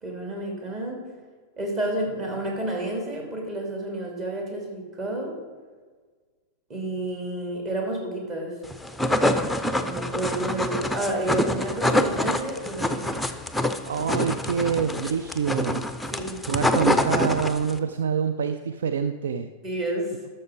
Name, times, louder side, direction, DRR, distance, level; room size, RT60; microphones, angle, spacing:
voice 1, 0.0-1.1 1.6-5.4 6.7-8.6 9.8-13.2 16.0-16.4 19.6-20.1, right 1 dB, 35° right, 0 dB, 2.8 m, -30 dB
sound 1, 8.7-17.8, left 1 dB, ahead, 0.6 m, -26 dB
voice 2, 13.9-15.8 16.5-19.5, right 7 dB, 65° right, 10 dB, 0.4 m, -26 dB
12.0 x 6.6 x 5.0 m, 1.5 s
figure-of-eight pair, 90°, 0 cm